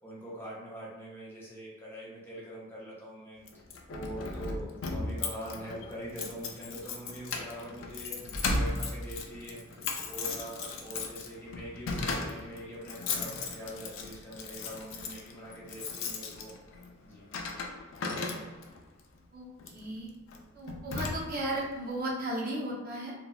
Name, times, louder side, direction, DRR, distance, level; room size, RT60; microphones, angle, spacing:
voice 1, 0.0-3.4 3.9-16.5 17.1-17.3, right 1 dB, 10° left, -6 dB, 0.6 m, -43 dB
Keys jangling, 3.5-18.8 19.6-19.8 20.3-20.4 20.7-21.6, left 3 dB, 65° left, 0.4 m, -36 dB
voice 2, 19.7-20.1 20.5-23.1, right 1 dB, 45° right, -4 dB, 0.6 m, -35 dB
2.9 x 2.3 x 2.3 m, 1.2 s
head